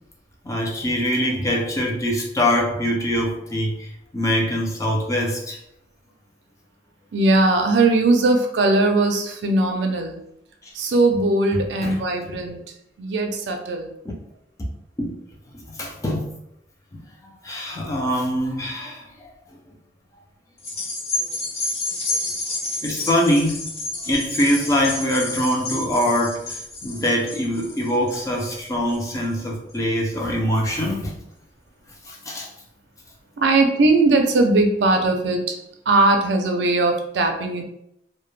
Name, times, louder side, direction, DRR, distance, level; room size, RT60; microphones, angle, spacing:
voice 1, 0.4-5.6 11.5-12.0 12.3-12.4 14.0-14.2 15.0-15.1 15.5-16.3 16.9-17.0 17.4-19.3 22.8-23.7 24.0-31.2 32.1-32.5, equal, 20° left, -1 dB, 0.4 m, -23 dB
voice 2, 7.1-10.2 10.8-12.6 13.0-13.9 33.4-35.5 35.9-37.6, right 2 dB, 85° right, 4 dB, 0.4 m, -19 dB
sound 1, 20.6-29.3 29.7-29.8, left 2 dB, 35° left, 0.8 m, -30 dB
2.1 x 2.1 x 3.1 m, 0.79 s
head